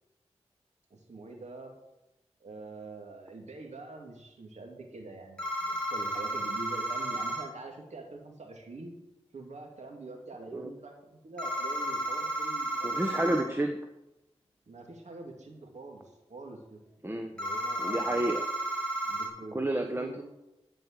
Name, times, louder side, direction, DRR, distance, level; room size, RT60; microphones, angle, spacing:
voice 1, 0.9-1.7 2.4-8.9 9.3-13.4 14.7-16.0 16.3-16.8 17.3-18.1 19.0-20.2, right 3 dB, 80° right, 2 dB, 2.4 m, -45 dB
sound 1, 5.4-7.4 11.4-13.4 17.4-19.3, right 1 dB, 10° left, 3.9 m, -32 dB
voice 2, 12.8-13.8 17.0-17.3 17.8-18.4 19.5-20.2, right 1 dB, 20° right, 5 dB, 1.1 m, -30 dB
12.0 x 5.3 x 7.6 m, 0.93 s
cardioid pair, 45°, 12 cm